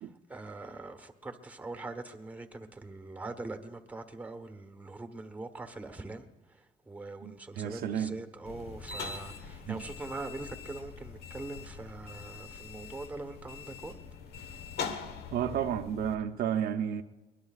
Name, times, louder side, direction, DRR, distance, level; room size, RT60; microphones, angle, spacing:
voice 1, 0.3-6.3 6.9-14.0, right 2 dB, 10° right, 1.2 m, -42 dB
voice 2, 7.2-8.2 9.7-9.9 15.3-17.0, right 9 dB, 65° right, 0.8 m, -32 dB
sound 1, 8.4-16.1, left 5 dB, 70° left, 1.2 m, -43 dB
22.0 x 20.5 x 2.4 m
cardioid pair, 110°, 17 cm